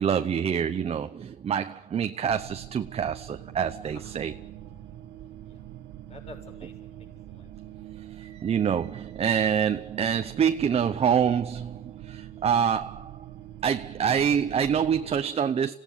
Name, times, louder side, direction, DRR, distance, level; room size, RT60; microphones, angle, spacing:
voice 1, 0.0-4.3 8.1-13.1 13.6-15.7, right 8 dB, 35° right, 0.8 m, -26 dB
sound 1, 2.3-15.2, right 12 dB, 90° right, 1.4 m, -44 dB
voice 2, 3.8-4.4 4.7-5.8 6.1-7.5, left 2 dB, 35° left, 7.1 m, -52 dB
26.0 x 17.0 x 9.8 m
cardioid pair, 110°, 17 cm